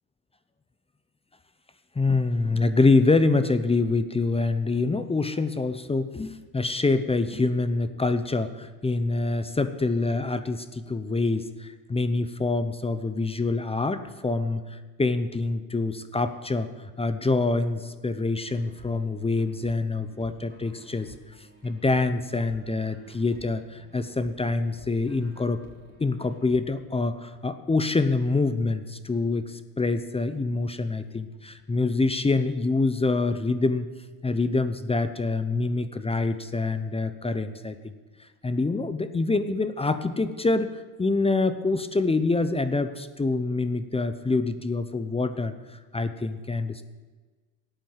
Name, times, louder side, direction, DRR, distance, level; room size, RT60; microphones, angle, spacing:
voice 1, 2.0-21.1 21.6-25.6 26.0-33.9 34.2-37.9 38.4-45.6 45.9-46.8, left 3 dB, 15° left, 11 dB, 0.8 m, -26 dB
sound 1, 18.4-26.6, equal, 20° right, 3.9 m, -54 dB
13.0 x 9.0 x 7.4 m, 1.4 s
supercardioid pair, 90°, 43 cm